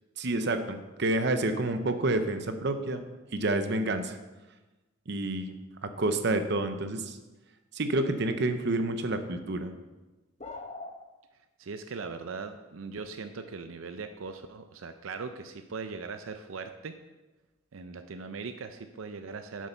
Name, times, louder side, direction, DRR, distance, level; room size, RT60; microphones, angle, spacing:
voice 1, 0.2-3.0 3.3-4.2 5.1-5.5 5.8-7.2 7.7-9.7, right 2 dB, 55° right, 8 dB, 0.8 m, -29 dB
sound 1, 10.4-11.0, left 3 dB, 35° left, 0.9 m, -40 dB
voice 2, 11.6-17.0 17.7-19.7, right 4 dB, 85° right, 8 dB, 0.6 m, -40 dB
8.0 x 7.5 x 5.6 m, 1.1 s
head